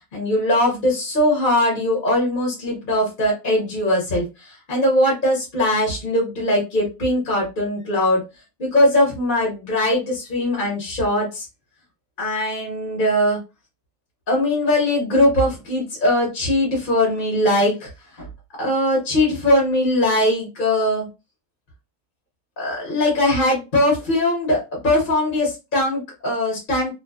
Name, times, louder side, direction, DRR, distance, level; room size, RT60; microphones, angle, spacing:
voice 1, 0.1-8.2 8.6-11.5 12.2-13.4 14.3-17.9 18.2-18.3 18.6-21.1 22.6-26.9, left 1 dB, 40° left, -2 dB, 0.8 m, -20 dB
2.6 x 2.2 x 2.3 m, 0.26 s
omnidirectional pair, 1.8 m